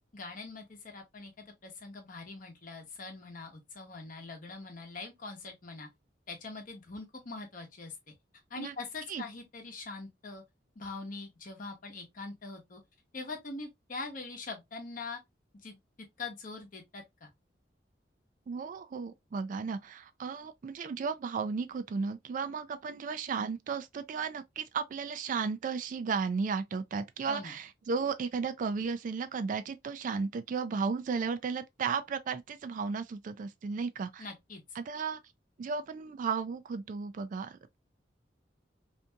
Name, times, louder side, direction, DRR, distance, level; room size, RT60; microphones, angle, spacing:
voice 1, 0.1-5.9 6.3-8.1 8.5-10.4 10.8-12.8 13.1-15.2 15.6-15.8 16.2-17.3 27.3-27.6 34.2-34.6, left 3 dB, 50° left, 0.9 m, -43 dB
voice 2, 18.5-34.3 34.8-35.2 35.6-37.8, right 5 dB, 45° right, 0.3 m, -34 dB
2.7 x 2.6 x 2.2 m
head